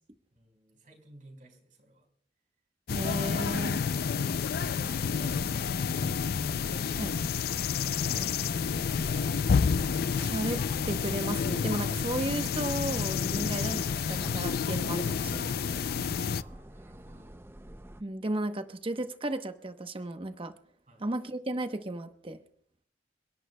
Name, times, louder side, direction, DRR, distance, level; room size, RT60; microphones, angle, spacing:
voice 1, 0.3-2.1 4.2-6.5 8.2-9.5 16.1-17.3 20.9-21.1, right 1 dB, 50° right, 3 dB, 4.6 m, -55 dB
sound 1, 2.9-16.4, left 6 dB, 60° left, 0.4 m, -29 dB
voice 2, 2.9-3.8 7.0-7.2 10.2-10.6 10.8-15.6 18.0-20.5 21.0-22.4, right 1 dB, 30° right, 8 dB, 0.9 m, -34 dB
sound 2, 4.7-18.0, right 1 dB, 15° right, 0.5 m, -48 dB
Hammer, 8.5-16.3, equal, 15° left, 2.0 m, -55 dB
29.5 x 11.0 x 2.2 m, 0.63 s
head